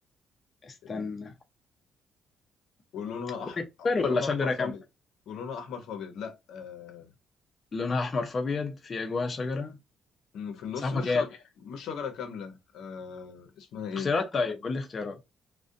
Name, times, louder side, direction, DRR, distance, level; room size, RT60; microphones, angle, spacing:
voice 1, 0.6-1.3 3.6-4.7 7.7-9.7 10.8-11.2 14.0-15.2, left 3 dB, 40° left, 0.5 m, -29 dB
voice 2, 2.9-3.6 3.9-4.8 5.3-7.1 10.3-14.1, left 6 dB, 80° left, 0.6 m, -38 dB
2.4 x 2.1 x 2.5 m
cardioid pair, 90°, 0 cm